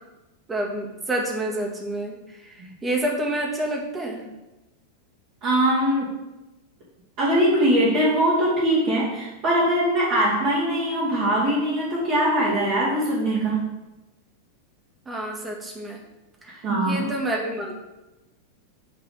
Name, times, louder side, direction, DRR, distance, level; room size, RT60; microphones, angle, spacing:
voice 1, 0.5-4.2 15.1-16.0 16.4-17.7, right 1 dB, 15° right, 0 dB, 1.8 m, -29 dB
voice 2, 5.4-6.1 7.2-13.7 16.6-17.1, right 1 dB, 45° right, -8 dB, 2.4 m, -22 dB
9.0 x 4.0 x 5.7 m, 1.0 s
figure-of-eight pair, 90°, 0 cm